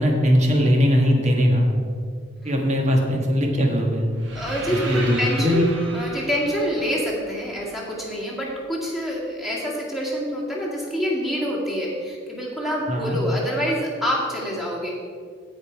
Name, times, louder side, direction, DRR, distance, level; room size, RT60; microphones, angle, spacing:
voice 1, 0.0-1.7 2.4-4.1 4.9-5.7 12.9-13.2, equal, 35° right, 1 dB, 1.6 m, -20 dB
sound 1, 4.1-8.2, right 2 dB, 70° right, 1.6 m, -37 dB
voice 2, 4.3-15.0, equal, ahead, -4 dB, 2.2 m, -26 dB
16.0 x 5.4 x 4.6 m, 2.1 s
head